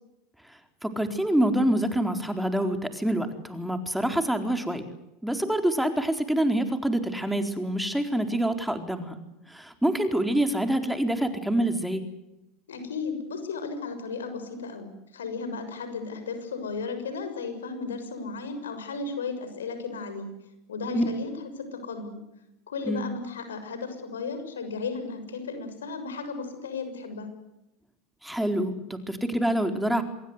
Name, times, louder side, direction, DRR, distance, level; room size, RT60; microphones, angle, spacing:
voice 1, 0.5-4.9 5.2-9.2 9.5-12.0 20.9-21.1 22.9-23.1 28.2-30.0, right 1 dB, 5° right, 7 dB, 4.2 m, -26 dB
voice 2, 12.7-20.3 20.7-21.3 21.6-22.2 22.7-27.3, left 4 dB, 90° left, 8 dB, 6.5 m, -34 dB
27.0 x 22.0 x 8.1 m, 0.91 s
hypercardioid pair, 85°, 0 cm